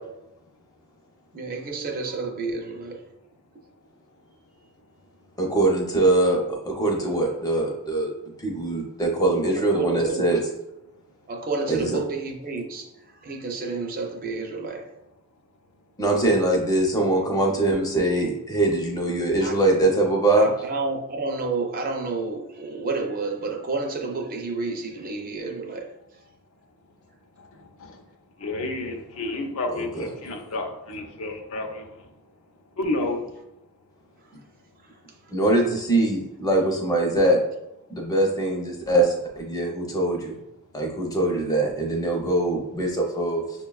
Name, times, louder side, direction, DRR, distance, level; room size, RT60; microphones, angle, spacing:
voice 1, 1.3-3.0 9.7-10.2 11.3-12.8 13.2-14.8 19.4-19.5 20.4-25.9, right 3 dB, 40° right, 0.5 m, -30 dB
voice 2, 5.4-8.1 8.4-10.4 11.7-12.0 16.0-20.5 29.7-30.1 35.3-37.4 37.9-40.3 40.7-43.4, right 2 dB, 15° left, 0.7 m, -22 dB
voice 3, 28.4-31.9 32.8-33.3, left 2 dB, 70° left, 0.5 m, -30 dB
6.3 x 2.2 x 2.3 m
head